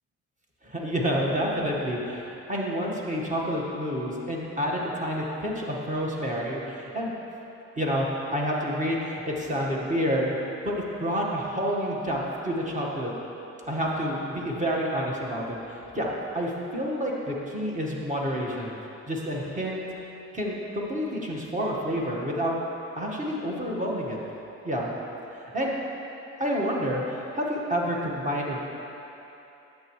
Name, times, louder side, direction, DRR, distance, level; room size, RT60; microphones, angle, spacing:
voice 1, 0.6-7.1 7.8-10.3 10.6-13.1 13.7-18.7 19.1-19.8 20.3-22.6 22.9-24.2 24.6-25.0 25.5-25.7 26.4-28.7, equal, 25° right, -3 dB, 1.6 m, -29 dB
10.5 x 8.0 x 3.2 m, 3.0 s
cardioid pair, 90°, 30 cm